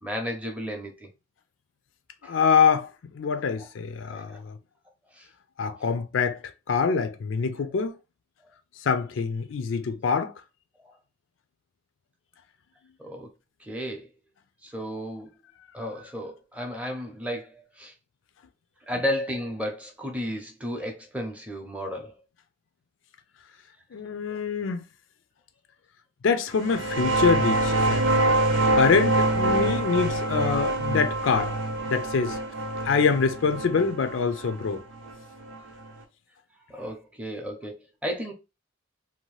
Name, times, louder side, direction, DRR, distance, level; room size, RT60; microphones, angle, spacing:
voice 1, 0.0-1.1 2.2-2.3 3.3-3.5 4.1-4.4 5.1-5.3 13.0-13.3 13.6-14.1 14.6-15.3 15.7-17.9 18.9-22.1 24.3-24.4 36.7-38.3, equal, 5° right, 0.5 m, -33 dB
voice 2, 2.3-2.9 3.1-4.6 5.6-6.4 6.7-7.9 8.8-10.3 23.9-24.8 26.2-28.1 28.7-31.5 31.8-32.4 32.8-34.8, left 5 dB, 75° left, 0.4 m, -25 dB
sound 1, 26.6-35.9, right 2 dB, 75° right, 0.7 m, -25 dB
2.7 x 2.2 x 3.1 m
head